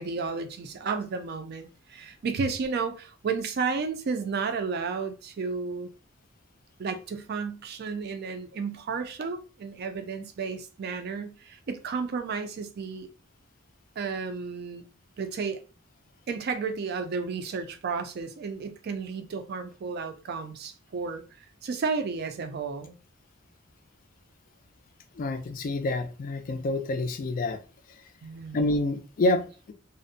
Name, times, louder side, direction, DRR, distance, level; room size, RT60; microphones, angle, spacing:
voice 1, 0.0-5.9 6.8-13.1 14.0-14.8 15.2-15.6 16.3-21.2 21.6-23.0 28.2-28.6, right 5 dB, 50° right, 0.4 m, -32 dB
voice 2, 25.2-27.6 28.5-29.7, left 2 dB, 45° left, 0.3 m, -28 dB
2.5 x 2.1 x 2.6 m
head